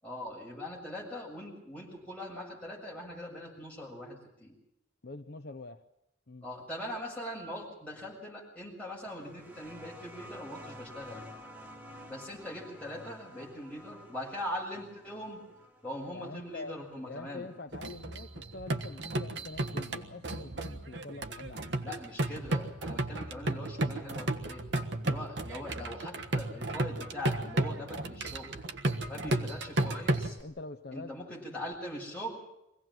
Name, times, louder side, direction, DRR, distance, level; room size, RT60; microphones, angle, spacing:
voice 1, 0.0-4.6 6.4-11.3 12.1-15.4 15.8-17.5 21.8-24.6 25.0-28.6 29.1-30.4 30.9-32.3, left 1 dB, 5° left, -4 dB, 7.0 m, -41 dB
voice 2, 5.0-5.8 6.3-6.4 16.1-21.8 30.4-31.1, left 2 dB, 55° left, 7 dB, 0.8 m, -45 dB
sound 1, 9.1-18.3 19.5-19.6, equal, 10° right, 1.6 m, -51 dB
sound 2, 17.7-30.4, right 2 dB, 60° right, 1.5 m, -33 dB
24.0 x 17.0 x 7.7 m, 0.86 s
head